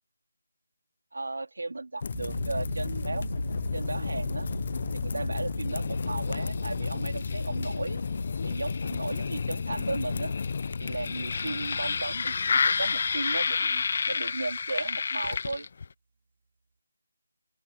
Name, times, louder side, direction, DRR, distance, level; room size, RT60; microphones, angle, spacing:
voice 1, 1.1-3.3 3.7-4.5 4.9-8.0 8.4-10.4 10.8-15.7, right 2 dB, 70° right, 3.2 m, -35 dB
sound 1, 2.0-15.9, left 5 dB, 30° left, 0.4 m, -30 dB
sound 2, 2.1-13.0, right 4 dB, 40° right, 3.3 m, -41 dB
open air
figure-of-eight pair, 175°, 0 cm